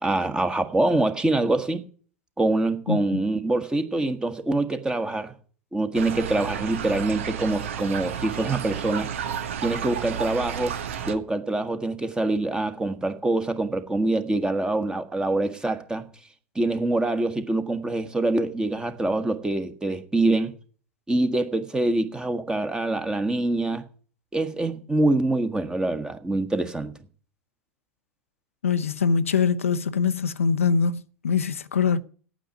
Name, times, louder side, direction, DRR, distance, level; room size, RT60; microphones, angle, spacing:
voice 1, 0.0-1.8 2.4-5.3 5.7-9.1 9.6-10.8 11.0-16.0 16.5-20.5 21.1-23.9 24.3-26.9, right 2 dB, 10° right, 1.5 m, -25 dB
sound 1, 5.9-11.2, right 8 dB, 70° right, 1.2 m, -32 dB
voice 2, 28.6-32.0, left 6 dB, 85° left, 0.7 m, -23 dB
9.1 x 8.3 x 9.2 m
hypercardioid pair, 90°, 7 cm